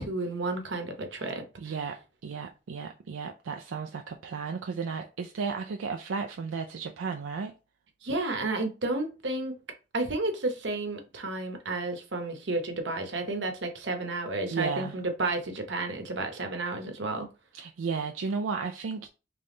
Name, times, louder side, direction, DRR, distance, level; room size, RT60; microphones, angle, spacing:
voice 1, 0.0-1.4 8.0-9.5 9.9-17.3, right 2 dB, 65° right, 0.9 m, -31 dB
voice 2, 1.6-7.5 14.5-15.0 17.5-19.1, right 5 dB, 85° right, 0.4 m, -34 dB
3.5 x 3.3 x 3.8 m
head